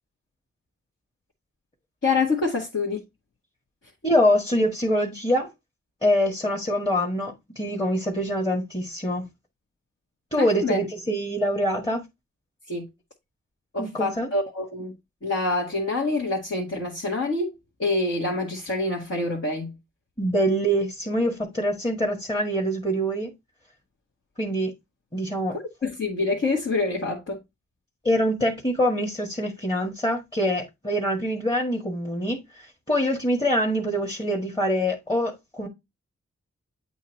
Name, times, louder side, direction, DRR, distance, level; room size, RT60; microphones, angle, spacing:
voice 1, 2.0-3.0 10.4-10.8 12.7-12.9 13.7-15.0 15.2-17.5 17.8-19.8 25.5-27.4, left 3 dB, 55° left, 1.9 m, -26 dB
voice 2, 4.0-5.5 6.0-9.3 10.3-12.0 13.8-14.3 20.2-23.3 24.4-24.7 25.1-25.5 28.0-35.7, equal, 15° left, 1.6 m, -24 dB
8.1 x 2.8 x 4.5 m
wide cardioid pair, 70°, 29 cm